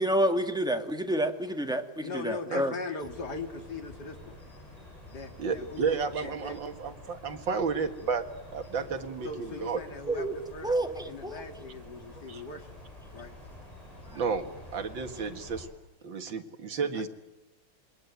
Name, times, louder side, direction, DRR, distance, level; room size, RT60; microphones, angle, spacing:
voice 1, 0.0-2.7 10.1-10.3 10.6-11.5 14.1-14.2, right 1 dB, ahead, 4 dB, 1.9 m, -29 dB
voice 2, 2.0-4.4 5.1-6.6 8.8-9.0 9.2-10.7 11.0-12.8 13.1-13.3 16.9-17.1, left 4 dB, 50° left, 6 dB, 2.9 m, -40 dB
sound 1, 3.0-15.7, left 1 dB, 15° left, 7.8 m, -49 dB
voice 3, 5.4-8.2 8.5-9.8 12.3-12.4 14.1-15.7 16.0-17.1, right 5 dB, 60° right, 7 dB, 2.5 m, -32 dB
27.5 x 22.5 x 9.4 m, 0.93 s
omnidirectional pair, 2.4 m